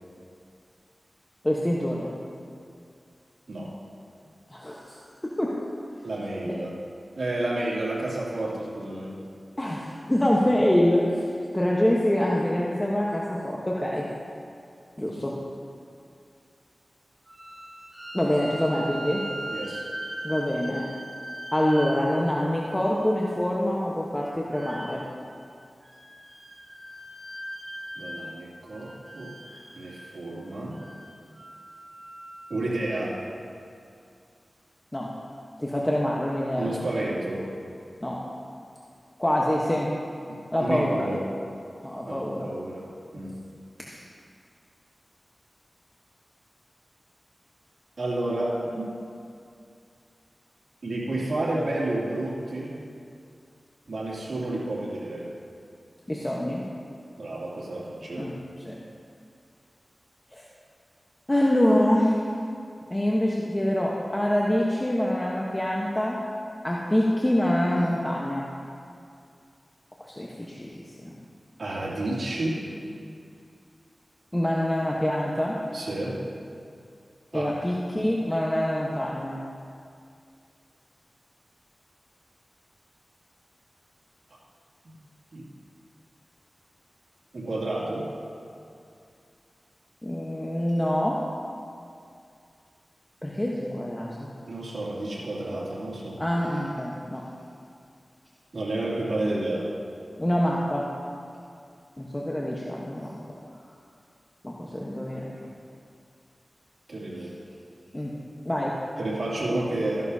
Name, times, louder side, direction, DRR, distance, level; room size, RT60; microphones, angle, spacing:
voice 1, 1.4-2.1 4.5-5.0 5.2-5.6 6.4-6.6 9.6-11.1 11.5-14.0 15.0-15.4 18.1-19.2 20.2-20.9 21.5-25.0 34.9-35.1 35.6-36.7 38.0-38.2 39.2-39.9 40.5-41.1 41.8-42.5 43.9-44.0 56.1-56.6 58.2-58.3 58.6-58.8 60.3-60.5 61.3-62.2 62.9-66.2 66.6-68.5 70.0-71.1 74.3-75.6 77.3-79.4 90.0-91.2 93.2-94.3 96.2-97.2 100.2-100.9 102.0-103.1 104.4-105.2 107.9-108.2 108.4-108.8, left 1 dB, 20° left, -4 dB, 1.1 m, -25 dB
voice 2, 6.0-6.7 7.2-9.1 15.0-15.2 19.5-19.9 28.0-29.4 29.7-30.8 32.5-33.2 36.6-37.5 40.3-41.2 42.0-42.9 43.1-43.4 48.0-48.9 50.8-52.8 53.9-55.3 57.2-58.3 71.6-72.7 75.7-76.2 77.3-77.6 85.3-85.5 87.3-88.1 94.5-96.2 98.5-99.7 106.9-107.3 109.0-110.1, right 2 dB, 80° right, -6 dB, 2.7 m, -30 dB
sound 1, 17.3-23.5 24.5-25.3 25.8-28.4 28.7-30.2 30.7-32.7, right 1 dB, 50° right, 2.4 m, -40 dB
14.5 x 11.0 x 2.8 m, 2.4 s
wide cardioid pair, 55°, 0 cm